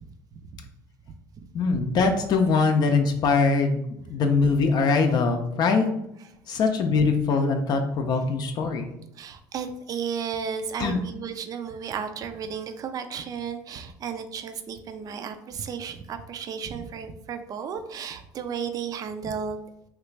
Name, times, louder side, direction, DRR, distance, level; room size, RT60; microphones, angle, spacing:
voice 1, 1.5-3.8 4.1-5.9 6.5-8.9 10.8-11.0, left 4 dB, 50° left, 5 dB, 0.4 m, -22 dB
voice 2, 9.1-19.6, right 7 dB, 45° right, 8 dB, 0.4 m, -33 dB
3.1 x 2.4 x 3.2 m, 0.81 s
supercardioid pair, 95°, 9 cm